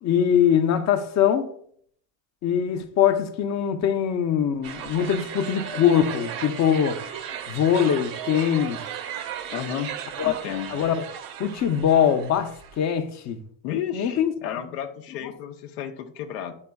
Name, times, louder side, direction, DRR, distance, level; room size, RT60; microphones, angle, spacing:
voice 1, 0.0-1.5 2.4-7.0 7.5-8.8 10.2-10.3 10.7-11.0 11.4-13.4 13.9-14.6 15.2-15.3, left 9 dB, 40° left, 0.7 m, -22 dB
sound 1, 4.6-12.8, right 9 dB, 50° right, 0.7 m, -36 dB
voice 2, 9.5-9.9 10.2-10.7 13.6-16.5, left 10 dB, 90° left, 0.8 m, -32 dB
11.0 x 4.3 x 2.3 m
cardioid pair, 130°, 44 cm